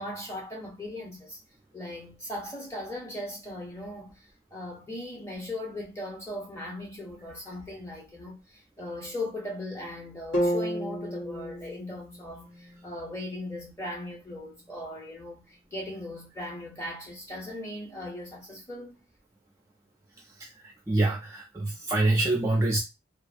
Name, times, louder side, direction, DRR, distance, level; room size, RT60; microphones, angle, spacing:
voice 1, 0.0-1.4 1.7-4.2 4.5-19.0, left 1 dB, 15° left, 0.8 m, -38 dB
sound 1, 10.3-14.4, equal, 85° left, 1.2 m, -33 dB
voice 2, 20.4-22.8, right 2 dB, 15° right, 0.4 m, -26 dB
2.6 x 2.4 x 2.5 m
head